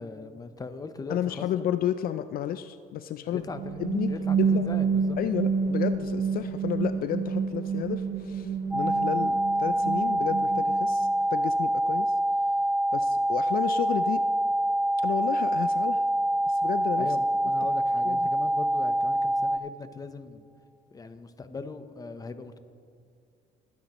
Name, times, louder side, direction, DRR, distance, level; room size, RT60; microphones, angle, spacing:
voice 1, 0.0-1.5 3.3-3.8 4.1-5.2 17.0-20.4 20.9-22.6, left 4 dB, 20° left, 10 dB, 0.8 m, -40 dB
voice 2, 1.1-3.4 3.8-4.7 5.2-12.1 12.9-14.2 15.0-16.0 16.4-17.1 18.0-18.3, left 11 dB, 60° left, 11 dB, 0.4 m, -32 dB
sound 1, 3.3-11.1, right 6 dB, 65° right, 0.7 m, -29 dB
sound 2, 8.7-19.6, right 1 dB, 5° right, 0.4 m, -25 dB
20.0 x 9.5 x 3.0 m, 2.4 s
cardioid pair, 110°, 17 cm